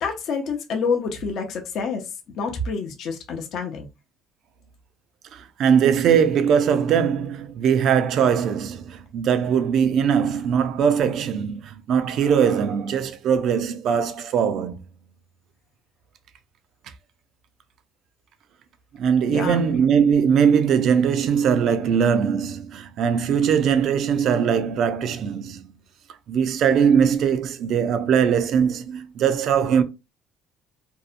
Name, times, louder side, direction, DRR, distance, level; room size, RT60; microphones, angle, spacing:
voice 1, 0.0-2.0 2.4-3.9 19.3-19.6, left 5 dB, 55° left, 0.6 m, -27 dB
voice 2, 5.3-14.8 18.9-25.7 26.3-29.8, right 7 dB, 55° right, 0.4 m, -21 dB
2.6 x 2.1 x 2.4 m
cardioid pair, 135°, 0 cm